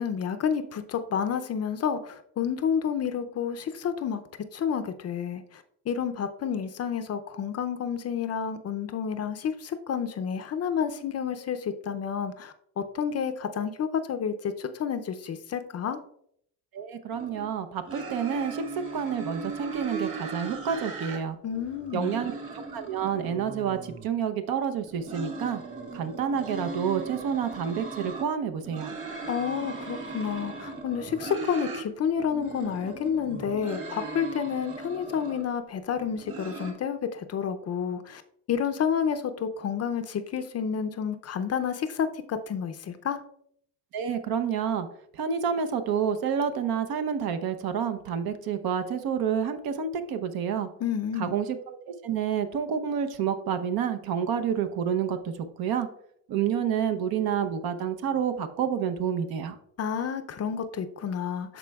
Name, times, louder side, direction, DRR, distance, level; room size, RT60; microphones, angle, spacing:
voice 1, 0.0-4.2 4.5-5.4 5.9-16.0 21.4-22.2 29.3-38.2 38.5-43.2 50.8-51.3 59.8-61.6, left 7 dB, 40° left, 9 dB, 0.5 m, -30 dB
voice 2, 16.7-18.6 18.9-21.4 21.9-22.4 22.7-25.6 25.9-29.0 43.9-44.9 45.2-50.7 51.2-55.2 55.6-55.9 56.3-59.5, right 7 dB, 60° right, 9 dB, 0.8 m, -29 dB
sound 1, 17.1-17.5 17.9-21.2 21.5-24.1 24.8-28.3 28.6-31.8 32.2-35.5 36.0-36.7, right 3 dB, 30° right, 1.9 m, -38 dB
13.0 x 4.3 x 2.3 m, 0.70 s
cardioid pair, 115°, 41 cm